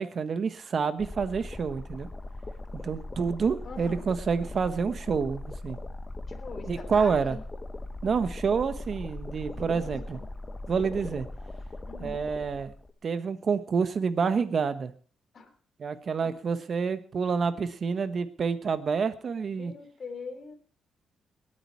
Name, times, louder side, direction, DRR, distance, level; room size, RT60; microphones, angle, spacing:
voice 1, 0.0-2.1 2.7-5.8 6.7-7.4 8.0-10.2 10.7-11.3 12.0-12.7 13.0-14.9 15.8-19.7, right 5 dB, 45° right, 11 dB, 1.3 m, -28 dB
sound 1, 1.0-12.9, left 2 dB, 20° left, 1.1 m, -39 dB
voice 2, 3.6-4.1 6.3-7.4 9.5-10.3 11.8-12.2 15.3-15.5 19.6-20.5, left 4 dB, 40° left, 5 dB, 3.0 m, -42 dB
20.0 x 8.9 x 4.7 m, 0.42 s
cardioid pair, 105°, 0 cm